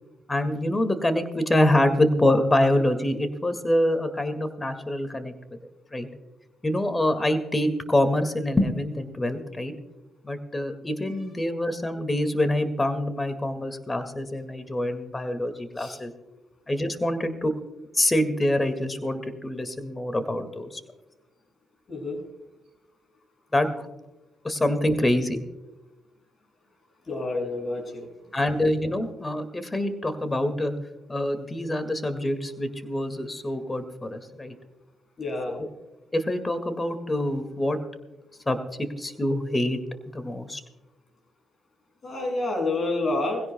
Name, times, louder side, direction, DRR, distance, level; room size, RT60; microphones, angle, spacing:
voice 1, 0.3-5.3 5.9-6.1 6.6-9.7 10.2-16.1 16.7-17.5 17.9-20.7 23.5-23.9 24.4-25.4 28.3-30.7 31.1-34.5 35.6-35.7 36.1-37.8 38.5-39.8 40.1-40.6, left 1 dB, 25° left, 9 dB, 2.0 m, -25 dB
voice 2, 21.9-22.2 27.1-28.1 35.2-35.6 42.0-43.4, left 2 dB, 45° left, 1 dB, 6.2 m, -28 dB
20.5 x 16.5 x 2.3 m, 1.0 s
hypercardioid pair, 50°, 0 cm